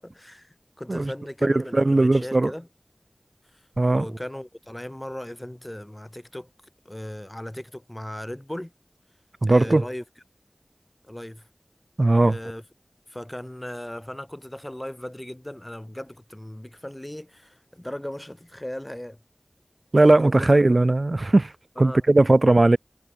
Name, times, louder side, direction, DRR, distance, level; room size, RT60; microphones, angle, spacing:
voice 1, 0.0-2.7 3.5-3.6 3.9-6.5 6.8-8.7 9.5-10.0 11.1-11.5 12.3-12.6 13.1-19.2 20.0-20.6 21.8-22.0, left 1 dB, 20° left, 2.5 m, -37 dB
voice 2, 1.4-2.5 3.8-4.0 9.4-9.8 12.0-12.4 19.9-21.5 21.8-22.8, right 2 dB, 65° right, 0.7 m, -18 dB
wide cardioid pair, 45°, 0 cm